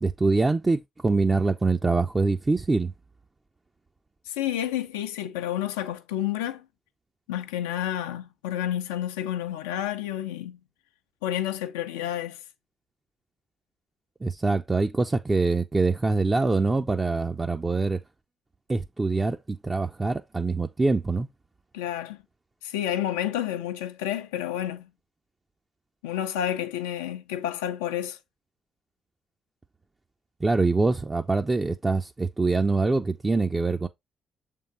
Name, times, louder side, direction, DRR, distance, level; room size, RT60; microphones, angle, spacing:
voice 1, 0.0-2.9 14.2-18.0 18.7-21.3 30.4-33.9, right 3 dB, 25° right, 0.7 m, -24 dB
voice 2, 4.3-6.7 7.3-10.6 11.2-12.4 21.7-22.2 22.6-24.9 26.0-28.2, left 11 dB, 80° left, 0.6 m, -30 dB
7.1 x 3.7 x 4.1 m
hypercardioid pair, 40°, 0 cm